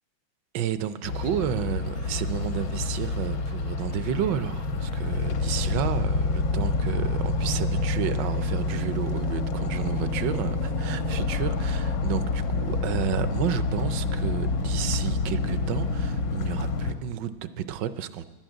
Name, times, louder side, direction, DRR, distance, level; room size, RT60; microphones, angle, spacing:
voice 1, 0.5-18.3, right 10 dB, 75° right, 13 dB, 1.2 m, -31 dB
sound 1, 1.0-16.9, left 3 dB, 75° left, 1.7 m, -27 dB
11.5 x 9.0 x 8.9 m, 1.3 s
omnidirectional pair, 2.1 m